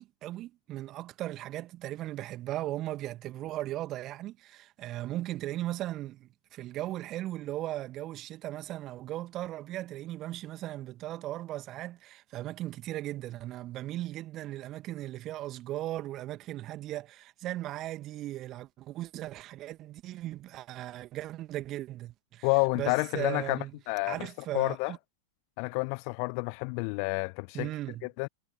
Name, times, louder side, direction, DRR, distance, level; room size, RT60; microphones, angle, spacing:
voice 1, 0.0-22.5 22.7-23.7 24.1-25.0 27.5-28.1, right 15 dB, 35° right, 2.2 m, -37 dB
voice 2, 22.4-23.6 23.9-24.3 24.5-24.9 25.6-27.7 28.2-28.3, left 40 dB or more, 45° left, 0.5 m, -29 dB
figure-of-eight pair, 90°, 0 cm